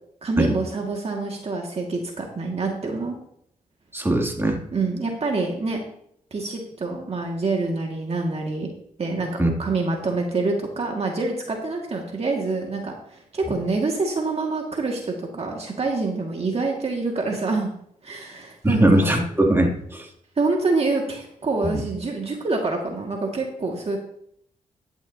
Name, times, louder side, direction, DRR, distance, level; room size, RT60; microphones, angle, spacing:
voice 1, 0.2-3.2 4.7-5.8 6.3-8.7 9.0-17.7 18.0-19.2 20.4-24.0, right 3 dB, 45° right, 0 dB, 2.0 m, -26 dB
voice 2, 3.9-4.6 9.4-9.5 18.6-20.1 21.6-21.8, right 1 dB, 15° right, 1 dB, 2.7 m, -20 dB
12.0 x 10.5 x 2.8 m, 0.69 s
cardioid pair, 60°, 15 cm